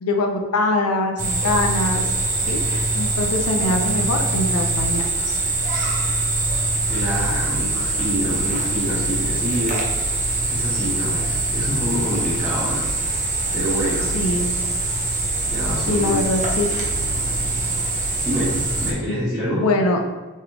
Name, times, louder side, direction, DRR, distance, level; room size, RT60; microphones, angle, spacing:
voice 1, 0.0-2.0 2.5-5.4 14.1-14.6 15.9-17.0 19.1-19.2 19.5-20.0, left 2 dB, 80° left, 3 dB, 0.5 m, -23 dB
sound 1, 1.2-18.9, right 2 dB, 35° right, 0.6 m, -23 dB
voice 2, 6.9-9.8 10.5-12.8 13.5-14.1 15.5-16.2 18.2-19.6, equal, ahead, -14 dB, 1.2 m, -26 dB
3.3 x 3.1 x 3.6 m, 1.2 s
head